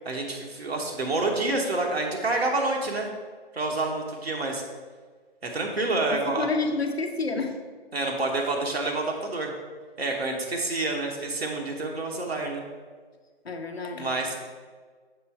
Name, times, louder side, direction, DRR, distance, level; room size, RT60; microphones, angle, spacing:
voice 1, 0.0-3.1 3.5-4.6 5.4-6.5 7.9-9.5 10.0-12.6 14.0-14.4, right 2 dB, 85° right, 0 dB, 1.0 m, -28 dB
voice 2, 6.1-7.6 13.4-14.1, left 3 dB, 80° left, 5 dB, 0.8 m, -29 dB
6.7 x 3.4 x 4.5 m, 1.5 s
figure-of-eight pair, 145°, 30 cm